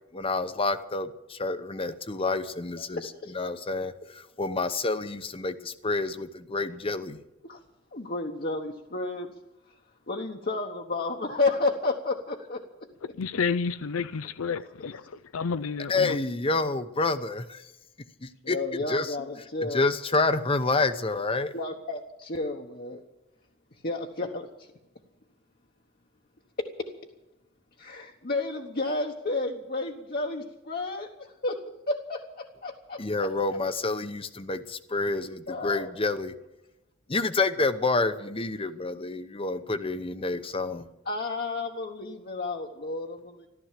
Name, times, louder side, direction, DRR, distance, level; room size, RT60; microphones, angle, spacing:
voice 1, 0.1-7.2 15.9-17.7 18.2-18.6 18.9-19.2 19.6-21.5 33.0-36.3 37.1-40.8, left 3 dB, 25° left, 0.9 m, -28 dB
voice 2, 2.8-3.3 7.4-7.6 7.9-9.3 10.1-12.9 14.2-14.3 14.6-14.9 18.4-19.8 21.5-23.0 23.8-24.7 26.6-26.9 27.8-33.0 35.5-35.9 41.1-43.5, left 3 dB, 45° left, 1.2 m, -32 dB
voice 3, 13.2-15.0 15.3-15.9, left 5 dB, 85° left, 0.5 m, -30 dB
14.5 x 13.0 x 7.5 m
head